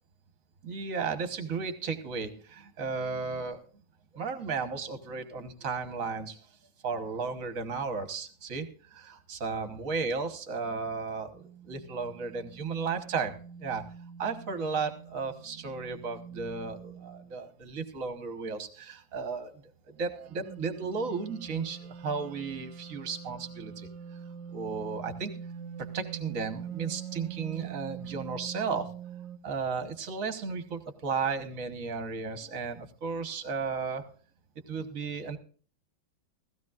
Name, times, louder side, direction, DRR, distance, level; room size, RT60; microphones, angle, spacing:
voice 1, 0.6-3.6 4.1-6.4 6.8-13.8 14.2-19.5 19.9-23.9 24.5-25.3 25.8-28.9 29.4-34.1 34.7-35.4, right 5 dB, 50° right, 9 dB, 1.5 m, -34 dB
sound 1, 11.3-17.5 20.1-29.4, right 8 dB, 75° right, 1.4 m, -44 dB
16.0 x 16.0 x 2.4 m, 0.40 s
omnidirectional pair, 2.1 m